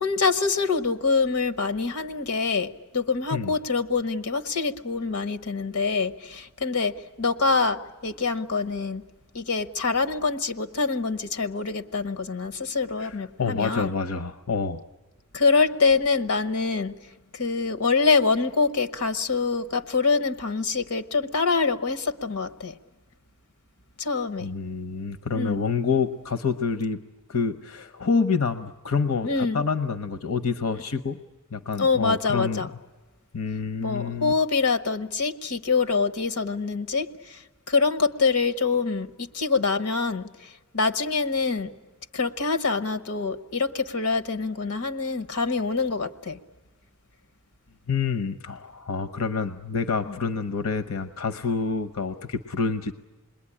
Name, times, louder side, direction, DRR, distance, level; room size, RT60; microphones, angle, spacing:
voice 1, 0.0-9.0 9.3-13.9 15.3-16.9 17.3-22.8 24.0-24.5 25.3-25.6 29.2-29.6 31.8-32.7 33.8-41.7 42.1-46.4 50.1-50.2, left 4 dB, 85° left, 14 dB, 1.1 m, -25 dB
voice 2, 13.0-14.8 24.4-27.0 27.3-31.2 31.5-32.7 33.3-34.3 47.9-52.9, left 5 dB, 70° left, 9 dB, 0.8 m, -27 dB
27.5 x 21.0 x 9.9 m, 1.3 s
head